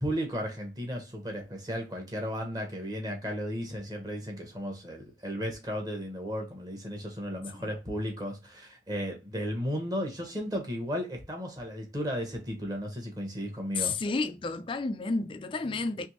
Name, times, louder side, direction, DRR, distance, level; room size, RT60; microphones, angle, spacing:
voice 1, 0.0-13.9, equal, 20° right, 1.0 m, -34 dB
voice 2, 13.7-16.1, left 3 dB, 30° left, 0.3 m, -31 dB
3.5 x 3.0 x 3.0 m
head